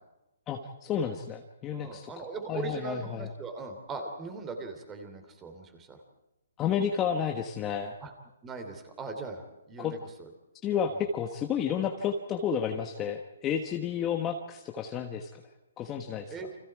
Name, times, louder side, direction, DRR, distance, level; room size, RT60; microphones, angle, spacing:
voice 1, 0.5-3.3 6.6-7.9 9.8-9.9 10.6-15.4 15.8-16.3, left 7 dB, 15° left, 3 dB, 1.3 m, -31 dB
voice 2, 1.7-6.0 8.0-8.1 8.4-10.3 10.9-11.0 14.2-14.3 16.3-16.5, right 4 dB, 10° right, 6 dB, 3.1 m, -40 dB
29.5 x 26.0 x 4.8 m, 0.94 s
hypercardioid pair, 165°, 0 cm